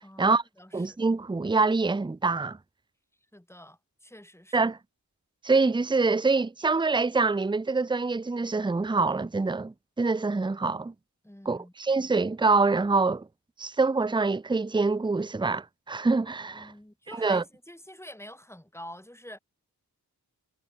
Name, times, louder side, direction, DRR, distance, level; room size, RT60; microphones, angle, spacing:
voice 1, 0.0-1.0 3.3-4.7 11.2-11.7 16.5-19.4, left 1 dB, 5° left, 4.9 m, -47 dB
voice 2, 0.7-2.6 4.5-4.8 5.4-10.9 11.5-13.3 13.6-16.7 17.1-17.4, right 3 dB, 15° right, 0.6 m, -25 dB
wide cardioid pair, 65°, 36 cm